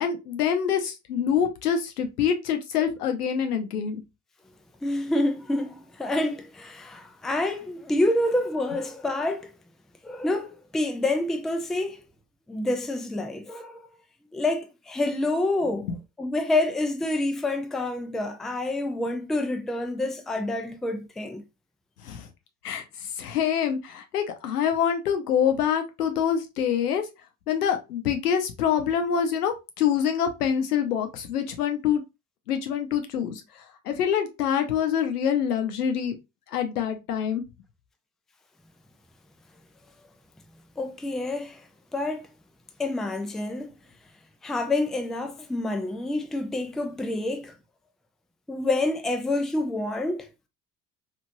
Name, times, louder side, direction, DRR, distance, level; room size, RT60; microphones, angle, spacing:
voice 1, 0.0-4.0 15.9-16.0 22.0-22.3 22.6-22.8 23.2-27.1 27.5-32.0 32.5-36.2 36.5-37.4, left 8 dB, 85° left, 0.7 m, -26 dB
voice 2, 4.8-9.5 10.0-12.0 12.5-13.9 14.3-15.9 16.2-21.4 40.8-42.3 42.8-43.7 44.4-47.6 48.5-50.3, left 2 dB, ahead, 0.3 m, -28 dB
3.0 x 2.5 x 2.6 m
hypercardioid pair, 60°, 45 cm